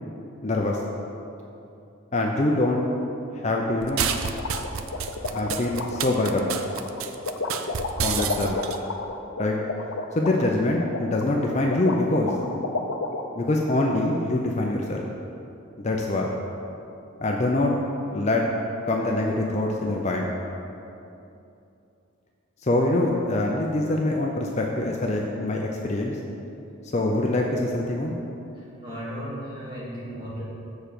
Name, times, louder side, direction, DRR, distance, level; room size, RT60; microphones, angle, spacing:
voice 1, 0.4-0.8 2.1-2.9 3.3-4.1 5.3-6.5 8.0-8.6 9.4-9.6 10.2-12.3 13.4-15.0 15.8-16.3 17.2-17.7 18.1-18.4 18.9-20.3 22.6-26.2 26.9-28.1, left 2 dB, 30° left, 0 dB, 0.5 m, -24 dB
sound 1, 3.8-8.8, right 7 dB, 80° right, 0.5 m, -29 dB
sound 2, 4.1-13.2, left 3 dB, 75° left, 0.6 m, -31 dB
voice 2, 28.5-30.4, equal, 25° right, -7 dB, 1.9 m, -36 dB
6.9 x 4.4 x 6.8 m, 2.8 s
head